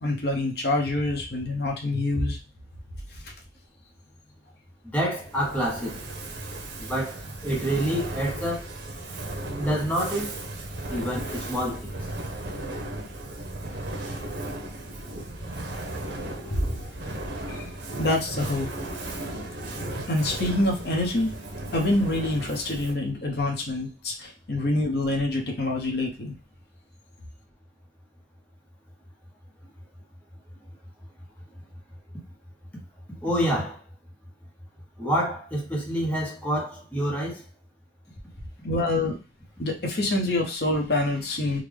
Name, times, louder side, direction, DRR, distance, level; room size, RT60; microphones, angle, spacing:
voice 1, 0.0-2.4 3.1-3.3 16.5-16.9 17.5-17.6 18.0-18.7 20.1-21.3 21.7-26.3 38.6-39.2 39.6-41.6, left 2 dB, 65° left, 0.9 m, -26 dB
voice 2, 4.9-6.0 6.8-7.2 7.4-8.7 9.6-10.3 10.9-11.9 16.3-16.6 33.2-33.8 35.0-37.4, equal, 10° left, 0.8 m, -27 dB
Fire, 5.2-23.1, right 1 dB, 85° right, 0.8 m, -36 dB
3.7 x 2.2 x 3.3 m
head